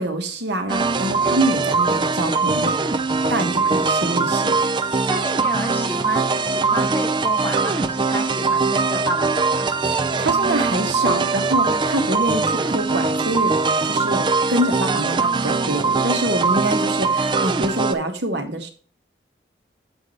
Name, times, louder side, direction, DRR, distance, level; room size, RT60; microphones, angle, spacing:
voice 1, 0.0-2.7 3.3-4.6 10.2-13.6 13.8-18.7, right 1 dB, 70° right, 5 dB, 1.3 m, -25 dB
sound 1, 0.7-17.9, right 4 dB, 25° right, 0.4 m, -21 dB
voice 2, 5.0-9.7, left 1 dB, 10° left, 2 dB, 1.1 m, -32 dB
8.1 x 4.7 x 5.4 m, 0.39 s
head